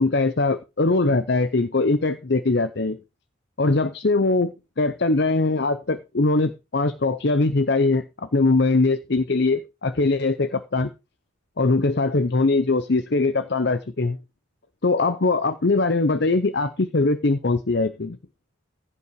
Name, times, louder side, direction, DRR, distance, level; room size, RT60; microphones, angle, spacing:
voice 1, 0.0-3.0 3.6-10.9 11.6-14.2 14.8-18.2, left 3 dB, 55° left, 0.7 m, -21 dB
15.5 x 5.6 x 4.7 m
head